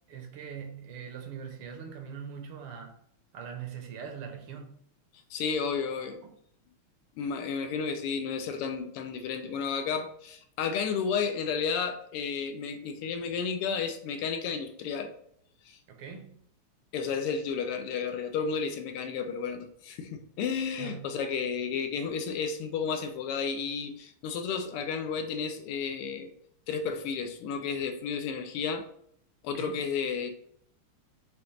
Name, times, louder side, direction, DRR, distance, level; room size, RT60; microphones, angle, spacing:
voice 1, 0.1-3.0 3.3-4.7 6.2-6.3 15.9-16.4 20.8-21.2 29.5-29.8, right 7 dB, 75° right, 1.6 m, -42 dB
voice 2, 5.3-6.2 7.2-15.1 15.7-15.8 16.9-26.3 26.7-28.8 29.4-30.3, left 6 dB, 90° left, 1.6 m, -32 dB
5.3 x 2.9 x 3.2 m
omnidirectional pair, 2.4 m